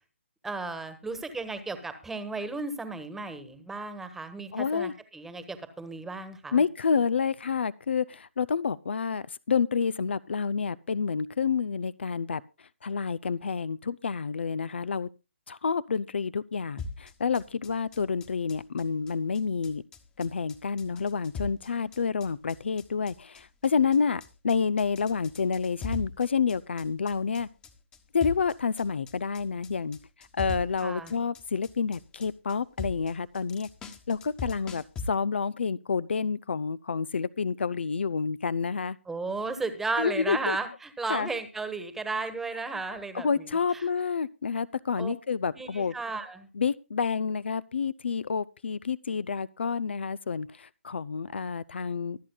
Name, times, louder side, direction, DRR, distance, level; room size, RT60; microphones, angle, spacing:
voice 1, 0.4-6.6 30.8-31.1 39.1-43.9 45.0-45.1 45.5-46.5, right 3 dB, 5° right, 1.4 m, -34 dB
voice 2, 4.5-4.9 6.5-12.4 12.8-15.1 15.5-19.8 20.2-27.5 28.1-30.0 30.3-33.7 34.1-39.0 40.0-40.6 41.1-41.3 43.1-45.9 46.5-52.2, left 5 dB, 65° left, 0.5 m, -29 dB
sound 1, 16.8-35.1, left 3 dB, 15° left, 1.2 m, -41 dB
24.0 x 8.5 x 2.3 m
figure-of-eight pair, 140°, 7 cm